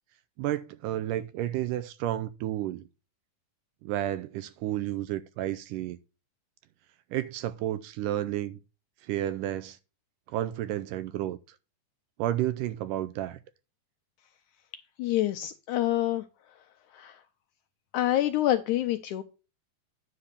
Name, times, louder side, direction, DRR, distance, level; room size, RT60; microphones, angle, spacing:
voice 1, 0.4-2.8 3.8-6.0 7.1-8.6 9.0-9.8 10.3-11.4 12.2-13.4, right 13 dB, 80° right, 2.0 m, -31 dB
voice 2, 15.0-16.2 16.9-17.2 17.9-19.2, left 13 dB, 80° left, 1.8 m, -27 dB
9.9 x 4.0 x 6.6 m
omnidirectional pair, 4.1 m